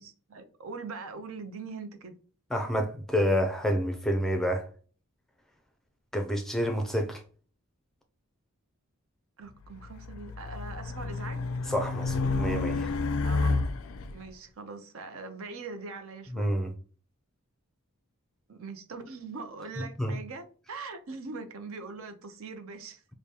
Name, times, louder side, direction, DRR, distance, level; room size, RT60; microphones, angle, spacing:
voice 1, 0.0-2.1 9.4-11.5 13.2-16.5 18.5-23.0, right 4 dB, 75° right, 0.6 m, -42 dB
voice 2, 2.5-4.7 6.1-7.2 11.7-12.9 16.3-16.7 19.8-20.2, equal, ahead, 0.4 m, -28 dB
Race car auto racing, 9.8-14.1, left 3 dB, 75° left, 0.4 m, -30 dB
4.9 x 2.2 x 2.8 m
head